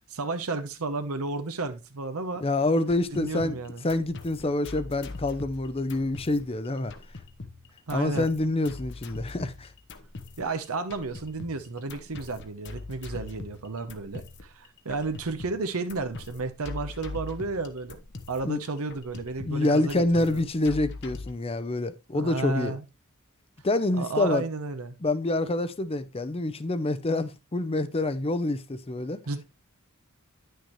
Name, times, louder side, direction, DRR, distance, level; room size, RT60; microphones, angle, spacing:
voice 1, 0.1-2.4 3.1-3.8 7.9-8.3 10.4-18.0 18.3-20.4 22.1-22.8 23.9-25.0 29.3-29.4, right 3 dB, 85° right, 0.9 m, -32 dB
voice 2, 2.4-3.6 3.8-6.9 7.9-9.7 18.4-18.6 19.4-22.8 23.6-24.4 25.0-29.2, left 2 dB, 25° left, 0.6 m, -27 dB
sound 1, 2.8-21.3, left 3 dB, 55° left, 0.9 m, -42 dB
9.7 x 6.5 x 3.0 m
head